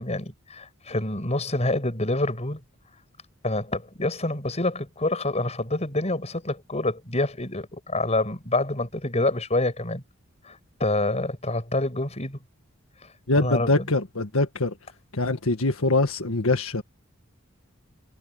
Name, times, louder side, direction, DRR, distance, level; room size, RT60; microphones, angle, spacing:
voice 1, 0.0-2.6 3.4-10.0 10.4-12.4 13.4-13.9, left 2 dB, 30° left, 6.1 m, -27 dB
voice 2, 13.3-14.7 15.1-16.8, left 2 dB, 80° left, 1.7 m, -23 dB
head